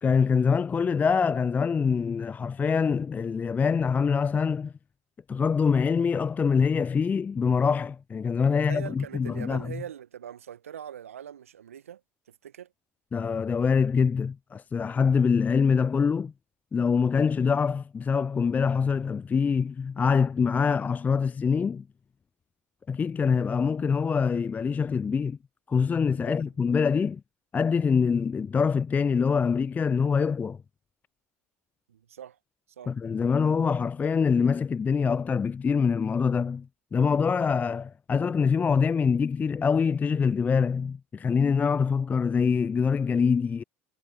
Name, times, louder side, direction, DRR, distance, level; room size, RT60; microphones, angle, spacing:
voice 1, 0.0-4.7 5.3-9.7 13.1-16.3 16.7-21.8 22.9-25.4 25.7-27.2 27.5-30.6 32.9-36.7 36.9-43.6, left 6 dB, 20° left, 0.4 m, -24 dB
voice 2, 8.5-12.0 12.3-12.7 26.1-26.4 31.9-32.4 32.8-33.0, right 9 dB, 80° right, 1.4 m, -42 dB
figure-of-eight pair, 65°, 7 cm